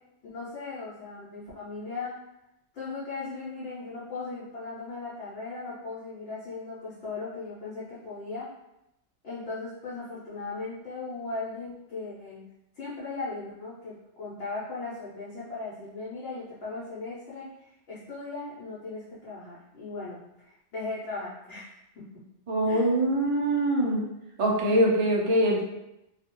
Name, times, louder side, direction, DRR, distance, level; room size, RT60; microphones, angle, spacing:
voice 1, 0.2-2.2 2.7-8.5 9.2-12.4 12.8-22.0 22.7-22.9, left 3 dB, 70° left, -9 dB, 0.9 m, -38 dB
voice 2, 22.5-24.0 24.4-25.6, right 1 dB, 65° right, -2 dB, 0.3 m, -23 dB
2.3 x 2.1 x 2.8 m, 0.87 s
omnidirectional pair, 1.2 m